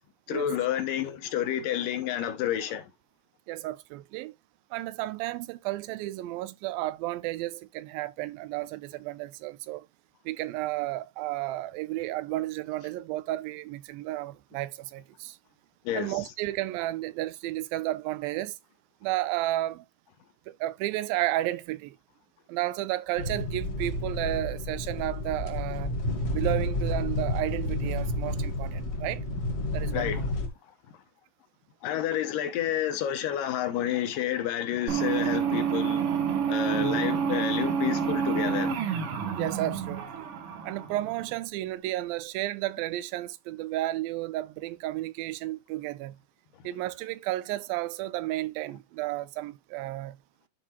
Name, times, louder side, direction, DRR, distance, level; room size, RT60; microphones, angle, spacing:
voice 1, 0.3-2.9 15.9-16.1 29.9-30.3 31.8-36.0 36.5-38.7, left 10 dB, 75° left, 2.5 m, -30 dB
voice 2, 3.5-4.3 4.7-9.9 10.3-15.4 15.9-18.6 19.0-19.9 20.5-22.0 22.5-25.9 26.3-29.2 29.7-30.3 36.7-37.0 39.4-40.3 40.7-46.2 46.6-50.2, right 16 dB, 90° right, 2.4 m, -32 dB
sound 1, 23.2-30.5, left 1 dB, 45° left, 1.2 m, -30 dB
sound 2, 34.9-41.2, right 7 dB, 65° right, 1.5 m, -28 dB
11.5 x 4.5 x 2.8 m
omnidirectional pair, 4.1 m